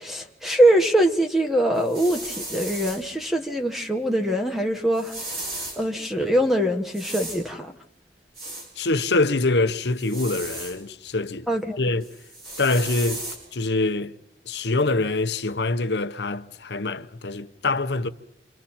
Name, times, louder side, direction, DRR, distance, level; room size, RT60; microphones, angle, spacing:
voice 1, 0.0-5.1 5.8-7.7 11.5-11.8, right 1 dB, ahead, 1.3 m, -22 dB
sound 1, 1.7-3.0 4.9-5.8 6.9-7.4 8.4-8.7 10.0-10.8 12.0-13.4, right 2 dB, 60° right, 7.7 m, -35 dB
voice 2, 8.8-11.5 11.8-12.1 12.6-13.3 13.5-14.1 14.5-18.1, left 2 dB, 80° left, 1.0 m, -24 dB
28.5 x 26.0 x 4.4 m
head